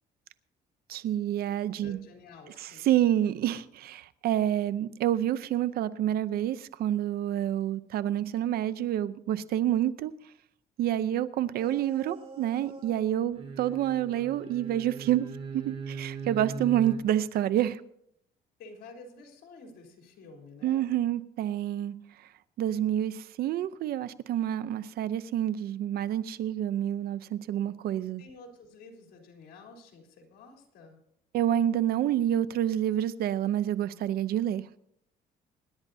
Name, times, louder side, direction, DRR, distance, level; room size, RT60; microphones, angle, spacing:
voice 1, 0.9-2.0 2.6-10.1 10.8-15.3 15.5-17.8 20.6-21.9 22.6-28.2 31.3-34.6, right 11 dB, 65° right, 0.7 m, -28 dB
voice 2, 1.8-2.9 18.6-20.9 28.2-31.0, left 3 dB, 70° left, 3.6 m, -50 dB
sound 1, 11.6-13.0 13.3-17.0, right 5 dB, 35° right, 4.3 m, -40 dB
25.5 x 10.5 x 2.7 m
cardioid pair, 110°, 17 cm